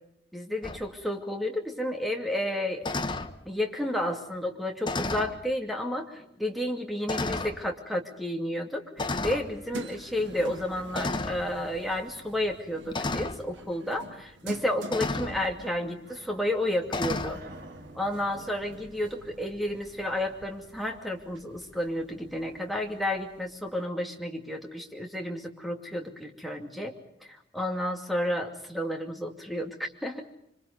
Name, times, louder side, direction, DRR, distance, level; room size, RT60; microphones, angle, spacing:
voice 1, 0.3-2.9 3.5-17.4 17.9-26.9 27.2-30.2, left 1 dB, ahead, 3 dB, 2.6 m, -31 dB
sound 1, 0.6-0.8 2.8-3.3 4.8-5.4 6.2-6.3 7.1-7.6 9.0-9.5 10.9-11.4 12.9-13.4 14.9-15.4 16.9-17.4, left 2 dB, 25° left, 1.1 m, -31 dB
sound 2, 9.0-23.8, right 2 dB, 85° right, 1.7 m, -47 dB
sound 3, 16.0-20.3, right 2 dB, 55° right, 3.1 m, -52 dB
26.0 x 25.5 x 5.4 m, 0.75 s
head